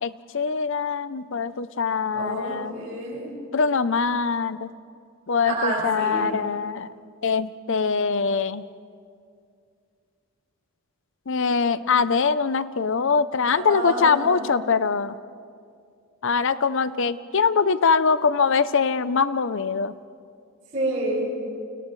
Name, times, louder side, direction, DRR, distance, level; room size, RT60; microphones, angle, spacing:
voice 1, 0.0-2.7 3.5-4.7 5.3-6.9 7.2-8.6 11.3-15.2 16.2-19.9, left 5 dB, 60° left, 14 dB, 0.6 m, -23 dB
voice 2, 2.1-3.3 5.5-6.3 13.5-14.5 20.7-21.3, right 1 dB, 35° right, -11 dB, 7.3 m, -28 dB
29.5 x 29.5 x 3.2 m, 2.3 s
head